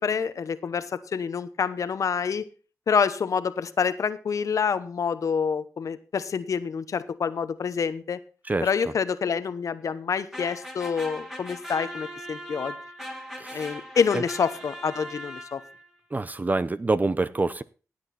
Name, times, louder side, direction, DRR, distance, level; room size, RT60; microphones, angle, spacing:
voice 1, 0.0-2.5 2.9-8.2 8.6-12.7 13.5-15.6, left 6 dB, 65° left, 1.0 m, -27 dB
voice 2, 8.4-8.9 13.4-13.8 14.1-14.2 16.1-17.6, right 3 dB, 30° right, 0.7 m, -27 dB
sound 1, 10.3-15.9, equal, 5° right, 3.0 m, -39 dB
17.0 x 8.0 x 4.2 m
cardioid pair, 60°, 6 cm